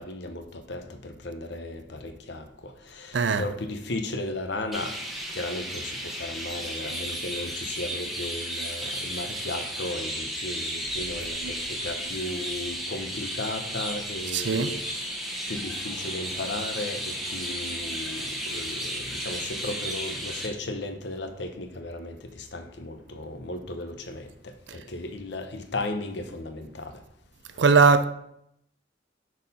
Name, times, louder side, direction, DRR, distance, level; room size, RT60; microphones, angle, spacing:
voice 1, 0.0-2.4 2.9-4.9 5.3-14.8 15.5-24.2 24.7-26.9, left 2 dB, 65° left, 0.8 m, -35 dB
voice 2, 3.1-3.4 11.4-11.5 14.3-14.7 27.6-28.0, right 5 dB, 65° right, 0.5 m, -20 dB
Chirp tweet, 4.7-20.5, equal, ahead, 1.0 m, -34 dB
6.1 x 4.3 x 5.3 m
head